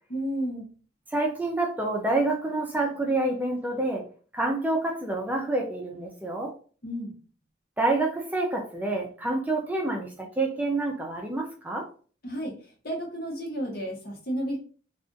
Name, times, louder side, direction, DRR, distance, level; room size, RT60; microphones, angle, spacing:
voice 1, 0.1-0.7 6.8-7.1 12.2-12.5 12.8-14.6, equal, 55° left, 0 dB, 1.0 m, -32 dB
voice 2, 1.1-4.1 4.3-6.5 7.8-11.9, right 2 dB, 10° right, 0 dB, 0.4 m, -27 dB
2.4 x 2.4 x 3.8 m, 0.41 s
head